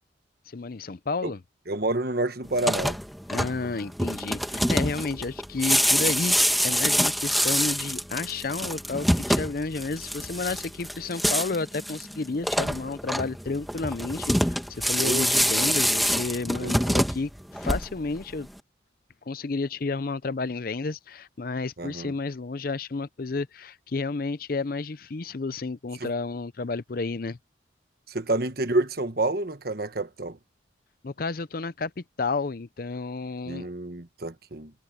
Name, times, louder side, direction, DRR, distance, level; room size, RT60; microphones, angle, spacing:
voice 1, 0.5-1.4 3.3-18.5 19.3-27.4 31.0-33.7, left 3 dB, 50° left, 0.5 m, -31 dB
voice 2, 1.7-3.0 15.0-15.3 16.6-16.9 21.8-22.1 26.0-26.1 28.1-30.4 33.5-34.7, right 2 dB, 50° right, 1.3 m, -28 dB
sound 1, 2.5-18.2, equal, ahead, 1.2 m, -26 dB
head